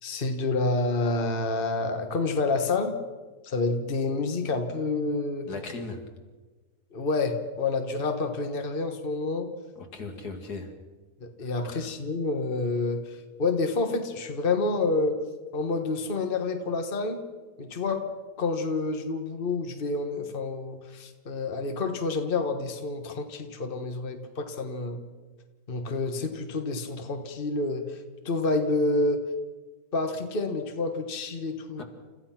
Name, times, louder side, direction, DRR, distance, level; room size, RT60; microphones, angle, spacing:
voice 1, 0.0-3.0 3.4-5.5 6.9-9.5 11.2-15.2 15.5-17.2 17.6-18.0 18.4-25.0 25.7-28.0 28.2-29.2 29.9-31.8, left 3 dB, 35° left, 6 dB, 1.5 m, -28 dB
voice 2, 5.5-6.0 9.8-10.7 11.4-11.8 31.8-31.9, left 3 dB, 80° left, 4 dB, 2.8 m, -38 dB
29.5 x 14.5 x 5.9 m, 1.3 s
omnidirectional pair, 1.7 m